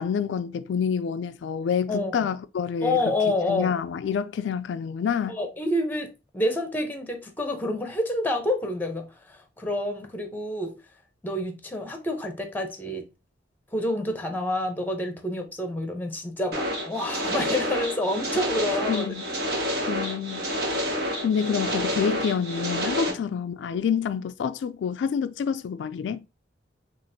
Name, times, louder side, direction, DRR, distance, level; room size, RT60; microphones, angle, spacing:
voice 1, 0.0-3.0 3.5-5.4 18.9-19.2 19.9-20.8 21.2-26.2, left 7 dB, 85° left, 0.3 m, -27 dB
voice 2, 1.9-2.2 2.8-3.7 5.3-10.8 11.2-13.1 13.7-19.1 23.1-23.2, left 1 dB, 10° left, 0.8 m, -28 dB
sound 1, 16.5-23.1, equal, 60° right, 1.4 m, -29 dB
5.7 x 2.5 x 2.7 m
head